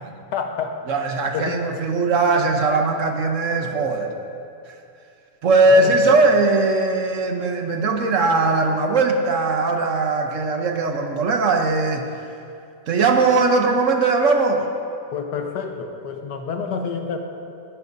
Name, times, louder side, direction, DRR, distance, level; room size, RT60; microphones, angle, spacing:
voice 1, 0.3-0.7 1.3-1.6 5.7-6.1 15.1-17.2, left 6 dB, 85° left, 4 dB, 1.5 m, -28 dB
voice 2, 0.9-4.1 4.7-4.8 5.4-12.3 12.9-14.6, right 3 dB, 55° right, 3 dB, 1.0 m, -19 dB
20.0 x 10.5 x 2.6 m, 2.6 s
omnidirectional pair, 1.8 m